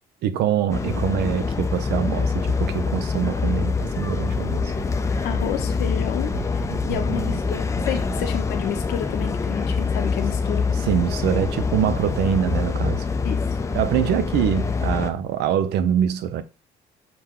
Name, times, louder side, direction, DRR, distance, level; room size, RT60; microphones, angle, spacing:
voice 1, 0.2-4.7 6.7-7.3 10.9-13.1 13.7-16.4, right 9 dB, 75° right, 0.5 m, -24 dB
sound 1, 0.7-15.1, left 4 dB, 15° left, 0.4 m, -25 dB
Thunder / Rain, 3.4-12.1 12.6-14.0, right 5 dB, 60° right, 1.7 m, -41 dB
voice 2, 5.2-10.7 13.2-13.6, left 10 dB, 75° left, 0.8 m, -30 dB
6.0 x 2.2 x 3.6 m
cardioid pair, 110°, 17 cm